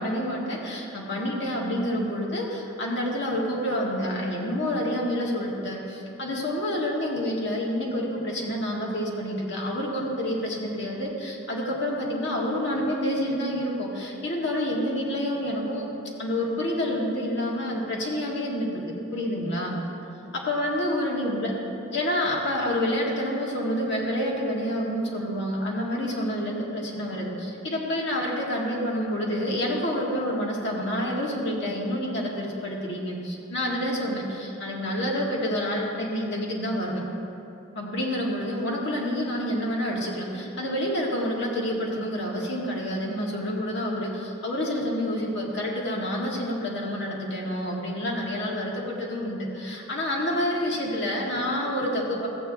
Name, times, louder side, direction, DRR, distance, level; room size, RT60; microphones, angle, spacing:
voice 1, 0.0-15.8 16.2-18.8 19.1-19.8 20.3-21.5 21.9-37.0 37.8-52.3, equal, 65° left, -3 dB, 1.9 m, -28 dB
14.5 x 8.7 x 3.5 m, 2.7 s
head